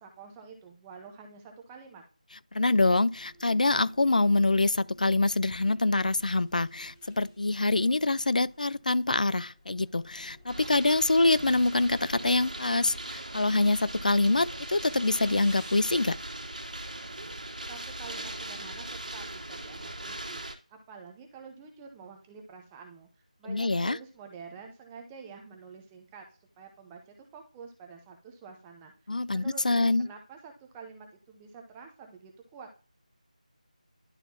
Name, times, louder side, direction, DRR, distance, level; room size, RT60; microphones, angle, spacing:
voice 1, 0.0-2.0 17.7-18.8 19.1-20.4 20.7-23.1 23.4-26.3 26.6-28.9 29.3-32.7, right 5 dB, 10° right, 0.6 m, -48 dB
voice 2, 2.5-16.2 23.5-24.0 29.1-30.1, left 2 dB, 75° left, 0.3 m, -25 dB
sound 1, 3.1-15.9, left 1 dB, 15° left, 1.0 m, -57 dB
sound 2, 10.5-20.6, right 1 dB, 75° right, 1.4 m, -40 dB
11.0 x 4.2 x 2.8 m
figure-of-eight pair, 165°, 4 cm